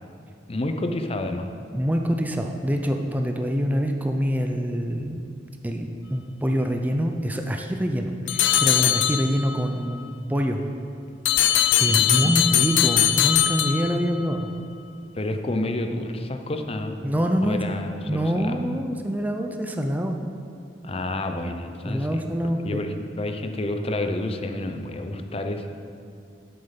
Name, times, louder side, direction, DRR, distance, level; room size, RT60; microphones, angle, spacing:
voice 1, 0.5-1.5 11.8-12.3 15.1-17.0 17.4-18.5 20.8-22.2 22.6-25.7, left 1 dB, 35° left, 6 dB, 0.7 m, -29 dB
voice 2, 1.7-5.2 5.6-10.6 11.8-14.5 17.0-17.6 18.1-20.2 21.8-22.8, equal, 10° right, 3 dB, 0.5 m, -25 dB
sound 1, 8.3-9.6 11.3-14.3, left 11 dB, 80° left, 0.5 m, -21 dB
8.4 x 7.9 x 5.8 m, 2.4 s
head